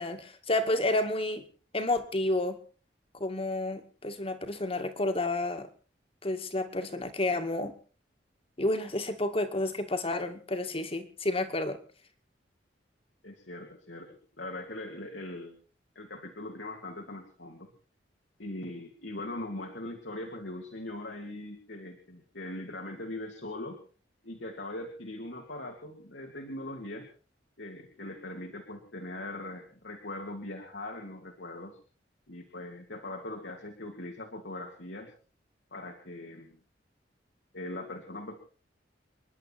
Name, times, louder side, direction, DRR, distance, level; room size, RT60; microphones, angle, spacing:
voice 1, 0.0-1.4 1.7-2.6 3.1-5.7 6.2-7.8 8.6-11.8, left 2 dB, 30° left, 8 dB, 2.2 m, -30 dB
voice 2, 13.2-15.6 15.9-17.7 18.4-23.8 24.2-27.1 27.6-31.8 32.3-35.1 35.7-36.6 37.5-38.5, left 1 dB, 75° left, 2 dB, 3.1 m, -41 dB
30.0 x 11.0 x 4.4 m, 0.39 s
head